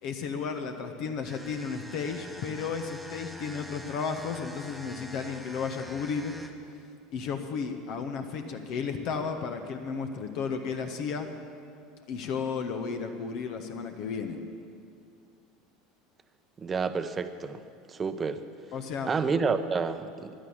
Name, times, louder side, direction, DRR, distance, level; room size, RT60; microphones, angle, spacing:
voice 1, 0.0-6.3 7.1-11.3 12.1-14.4 18.7-19.1, left 5 dB, 50° left, 6 dB, 1.2 m, -33 dB
sound 1, 1.2-6.7, equal, 5° left, 1.3 m, -46 dB
voice 2, 16.6-17.6 17.9-18.4 19.1-20.3, right 5 dB, 25° right, 10 dB, 0.9 m, -29 dB
15.5 x 11.0 x 7.2 m, 2.4 s
figure-of-eight pair, 70°, 0 cm